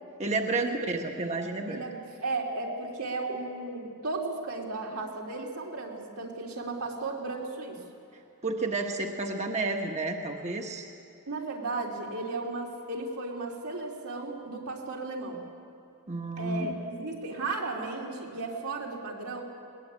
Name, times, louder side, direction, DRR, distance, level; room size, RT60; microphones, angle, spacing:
voice 1, 0.2-1.8 8.4-10.8 16.1-16.8, right 3 dB, 30° right, 3 dB, 1.3 m, -31 dB
voice 2, 1.7-7.8 11.3-15.4 16.4-19.4, right 3 dB, 80° right, -1 dB, 3.7 m, -35 dB
21.0 x 19.5 x 8.6 m, 2.7 s
head